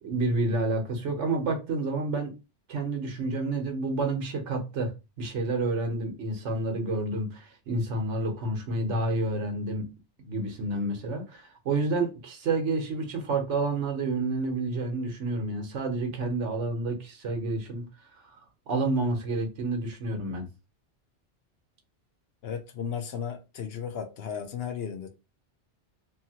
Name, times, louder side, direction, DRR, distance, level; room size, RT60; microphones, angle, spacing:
voice 1, 0.0-2.3 2.7-4.9 5.2-9.9 10.2-17.8 18.7-20.5, right 2 dB, 75° right, 1.1 m, -29 dB
voice 2, 22.4-25.1, left 7 dB, 65° left, 0.7 m, -35 dB
2.7 x 2.7 x 2.7 m
omnidirectional pair, 1.2 m